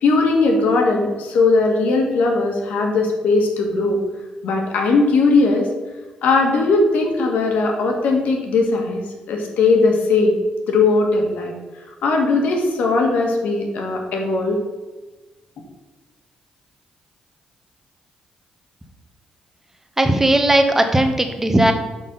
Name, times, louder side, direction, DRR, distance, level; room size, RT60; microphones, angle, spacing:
voice 1, 0.0-4.0 4.4-5.7 6.2-9.0 9.3-10.4 10.7-11.5 12.0-14.6, left 3 dB, 80° left, 1 dB, 1.7 m, -18 dB
voice 2, 20.0-21.7, right 1 dB, 15° right, 6 dB, 1.0 m, -17 dB
6.3 x 5.6 x 5.5 m, 1.2 s
cardioid pair, 90°, 3 cm